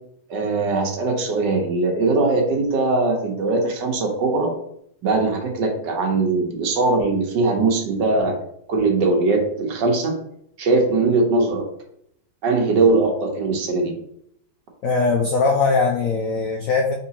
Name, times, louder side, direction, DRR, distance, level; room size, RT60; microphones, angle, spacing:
voice 1, 0.3-4.5 5.0-8.4 8.7-10.1 10.6-11.6 12.4-13.9, right 3 dB, 65° right, 2 dB, 1.4 m, -20 dB
voice 2, 14.8-16.9, left 4 dB, 85° left, 2 dB, 0.7 m, -20 dB
4.6 x 3.8 x 2.8 m, 0.71 s
omnidirectional pair, 2.1 m